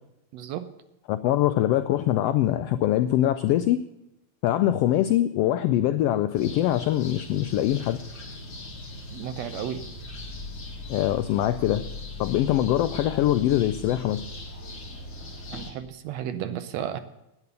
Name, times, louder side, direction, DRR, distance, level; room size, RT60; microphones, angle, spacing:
voice 1, 0.3-0.7 9.1-9.8 15.5-17.0, right 10 dB, 75° right, 10 dB, 1.8 m, -33 dB
voice 2, 1.1-3.8 4.4-8.0 10.9-11.8 12.2-14.2, left 13 dB, 85° left, 10 dB, 1.4 m, -23 dB
sound 1, 6.3-15.7, left 2 dB, 40° left, 2.7 m, -39 dB
11.0 x 9.4 x 6.7 m, 0.91 s
omnidirectional pair, 3.3 m